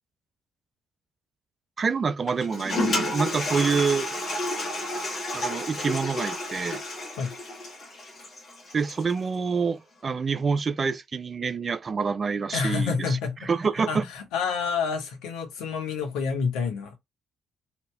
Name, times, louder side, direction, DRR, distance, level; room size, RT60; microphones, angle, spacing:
voice 1, 1.8-4.1 5.3-6.8 8.7-14.0, right 5 dB, 40° right, 0.3 m, -27 dB
Toilet flush, 2.3-9.2, left 1 dB, 50° left, 1.4 m, -31 dB
voice 2, 12.5-13.5 13.9-16.9, left 5 dB, 65° left, 0.8 m, -28 dB
2.8 x 2.7 x 2.2 m
figure-of-eight pair, 45°, 0 cm